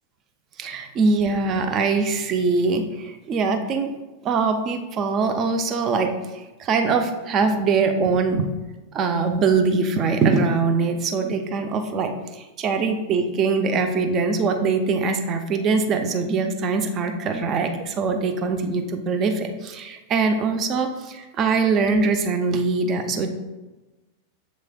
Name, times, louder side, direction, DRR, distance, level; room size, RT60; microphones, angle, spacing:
voice 1, 0.6-3.9 4.2-6.1 6.6-8.5 8.9-12.1 12.6-23.3, right 4 dB, 30° right, 6 dB, 0.5 m, -22 dB
7.0 x 3.1 x 2.2 m, 1.1 s
figure-of-eight pair, 90°, 0 cm